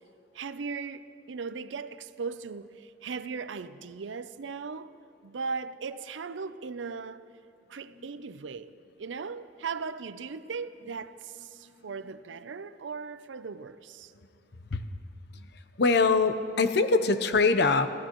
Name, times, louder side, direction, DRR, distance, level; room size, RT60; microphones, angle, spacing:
voice 1, 0.3-7.3 7.7-14.1, right 5 dB, 85° right, 0.5 m, -38 dB
voice 2, 15.8-17.9, left 4 dB, 65° left, 0.7 m, -23 dB
28.5 x 16.0 x 3.0 m
head